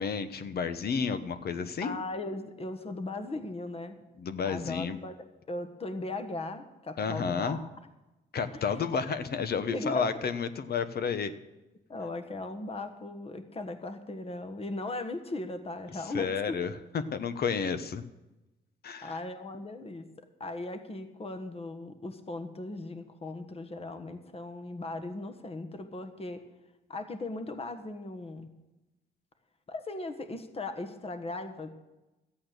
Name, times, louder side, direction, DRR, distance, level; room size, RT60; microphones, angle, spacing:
voice 1, 0.0-2.0 4.2-5.0 7.0-7.6 8.3-11.3 16.1-18.0 18.8-19.2, left 6 dB, 50° left, 11 dB, 1.0 m, -31 dB
voice 2, 1.8-4.0 4.5-5.2 5.5-7.7 8.5-8.7 9.7-10.1 11.9-16.6 19.0-20.1 20.4-26.4 26.9-28.5 29.7-31.7, left 2 dB, 30° left, 8 dB, 1.4 m, -38 dB
13.5 x 8.6 x 6.6 m, 1.0 s
cardioid pair, 90°, 20 cm